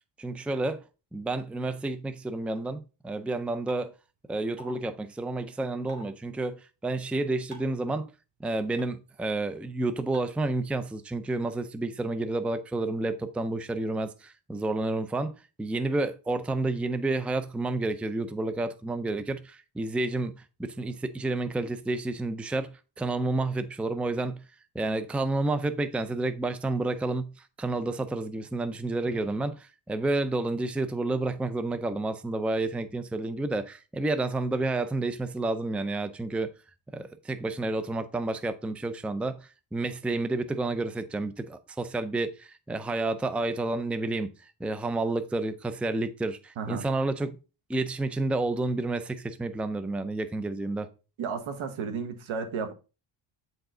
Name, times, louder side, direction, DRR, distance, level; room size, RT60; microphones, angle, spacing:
voice 1, 0.2-0.8 1.1-3.9 4.3-8.1 8.4-24.4 24.7-36.5 36.9-44.3 44.6-47.4 47.7-50.9, right 2 dB, 5° right, 0.5 m, -30 dB
sound 1, 3.7-3.8 4.6-4.7 5.9-6.1 7.5-7.8 8.8-8.9 10.1-10.2, equal, 40° right, 2.3 m, -45 dB
voice 2, 51.2-52.7, right 5 dB, 80° right, 1.5 m, -33 dB
8.9 x 4.9 x 3.8 m
cardioid pair, 125°, 48 cm